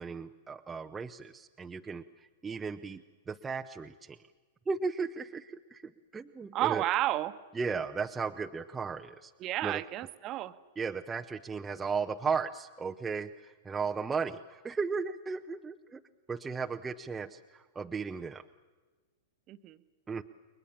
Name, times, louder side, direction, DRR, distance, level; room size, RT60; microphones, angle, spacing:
voice 1, 0.0-3.0 3.3-4.2 4.7-6.8 7.5-9.3 9.6-9.8 10.8-16.0 16.3-18.4 20.1-20.2, right 5 dB, 15° right, 4 dB, 0.8 m, -35 dB
voice 2, 6.5-7.3 9.4-10.5 19.5-19.8, right 15 dB, 35° right, 12 dB, 1.3 m, -31 dB
30.0 x 22.5 x 7.3 m, 1.3 s
figure-of-eight pair, 100°, 0 cm